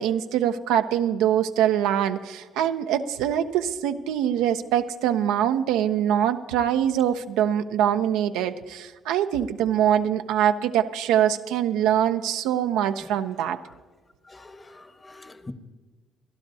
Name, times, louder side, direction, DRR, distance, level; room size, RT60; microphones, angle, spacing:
voice 1, 0.0-13.6, right 10 dB, 85° right, 0.6 m, -23 dB
voice 2, 14.2-15.5, left 2 dB, 25° left, 1.2 m, -44 dB
27.5 x 11.5 x 2.7 m
supercardioid pair, 65°, 0 cm